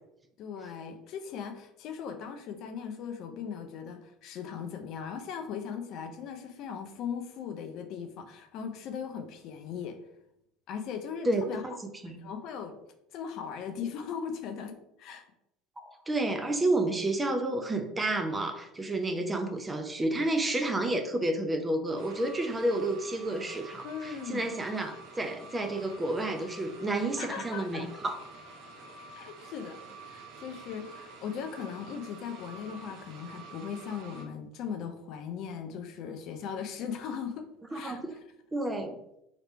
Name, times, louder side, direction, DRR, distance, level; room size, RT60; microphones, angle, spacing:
voice 1, 0.4-10.0 10.7-11.6 12.1-12.7 13.1-15.2 23.8-24.6 27.2-27.9 29.2-38.0, left 7 dB, 50° left, 6 dB, 0.5 m, -39 dB
voice 2, 11.2-12.2 15.8-28.2 37.7-38.2 38.5-39.0, right 2 dB, 15° right, 7 dB, 0.5 m, -30 dB
sound 1, 22.0-34.2, right 3 dB, 55° right, 0.8 m, -48 dB
3.2 x 2.9 x 4.4 m, 0.80 s
figure-of-eight pair, 65°, 0 cm